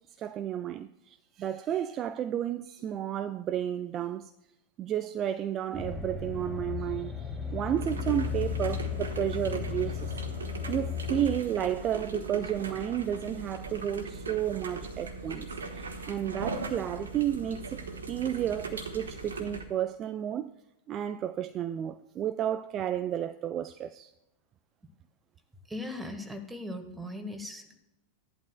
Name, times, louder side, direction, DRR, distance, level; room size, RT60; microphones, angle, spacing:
voice 1, 0.2-4.3 4.8-10.1 10.7-17.8 18.1-20.5 20.9-24.1, right 10 dB, 30° right, 0.4 m, -32 dB
sound 1, 5.7-11.4, left 7 dB, 10° left, 1.7 m, -35 dB
sound 2, 7.8-19.6, right 3 dB, 70° right, 1.3 m, -39 dB
voice 2, 25.7-27.8, left 1 dB, 5° right, 1.5 m, -39 dB
16.0 x 11.5 x 2.2 m
figure-of-eight pair, 90°, 0 cm